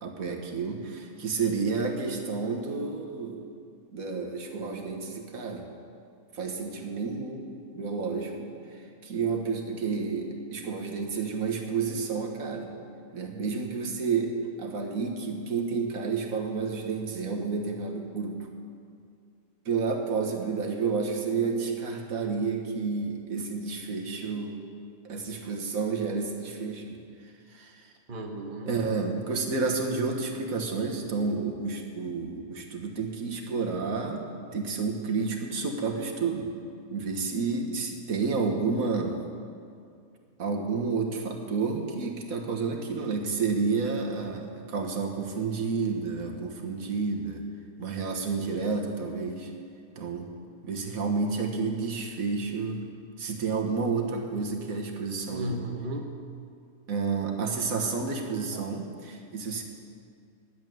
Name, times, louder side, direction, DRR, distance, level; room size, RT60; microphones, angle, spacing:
voice 1, 0.0-3.4 3.9-5.7 6.3-7.4 7.7-8.5 9.0-12.7 13.1-18.5 19.6-24.6 25.0-27.0 27.5-27.8 28.6-34.2 34.5-36.5 36.9-39.2 40.4-47.4 47.8-49.5 49.9-50.3 50.6-52.8 53.2-55.6 56.9-59.6, right 4 dB, 70° right, 2 dB, 1.7 m, -30 dB
voice 2, 28.1-28.8 55.3-56.1 58.5-58.7, equal, 35° right, 2 dB, 1.3 m, -35 dB
11.0 x 8.0 x 9.2 m, 2.3 s
omnidirectional pair, 1.5 m